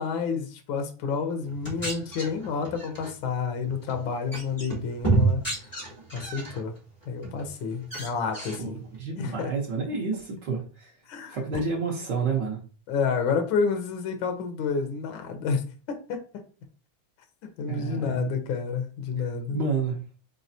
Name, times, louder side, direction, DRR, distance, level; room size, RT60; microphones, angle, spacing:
voice 1, 0.0-5.4 6.1-6.7 7.1-8.8 9.2-9.5 11.1-11.4 12.9-16.2 17.6-19.6, left 5 dB, 90° left, 1.0 m, -29 dB
sound 1, 1.5-3.1 3.7-4.0 4.3-6.6 7.0-7.5 7.8-8.6, right 3 dB, 5° left, 2.3 m, -29 dB
voice 2, 8.6-10.9 11.3-12.6 17.7-18.3 19.5-20.0, right 4 dB, 90° right, 0.9 m, -29 dB
4.7 x 4.0 x 2.7 m
omnidirectional pair, 3.3 m